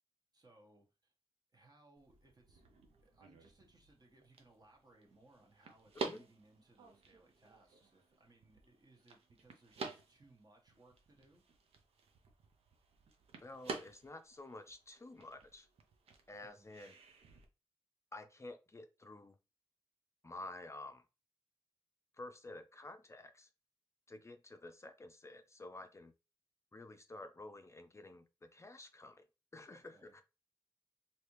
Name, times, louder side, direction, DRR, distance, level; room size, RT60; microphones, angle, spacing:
voice 1, 0.3-1.1 1.5-2.6 3.0-11.4 16.4-16.7 29.7-30.2, right 2 dB, 40° right, 1.2 m, -66 dB
sound 1, 2.0-17.4, right 4 dB, 85° right, 0.6 m, -50 dB
voice 2, 13.4-15.7 16.3-17.0 18.1-19.4 20.2-21.0 22.2-23.5 24.1-26.1 26.7-29.2 29.5-30.2, left 2 dB, 30° left, 0.4 m, -51 dB
3.3 x 2.8 x 3.0 m
cardioid pair, 50°, 10 cm